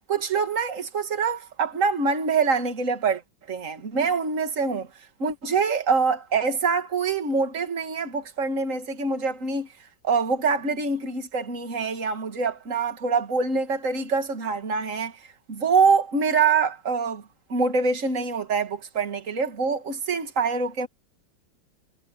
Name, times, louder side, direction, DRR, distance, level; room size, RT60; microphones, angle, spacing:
voice 1, 0.1-3.2 3.5-4.9 5.2-9.7 10.0-15.2 15.5-17.2 17.5-20.9, right 4 dB, 40° right, 2.5 m, -25 dB
omnidirectional pair, 2.1 m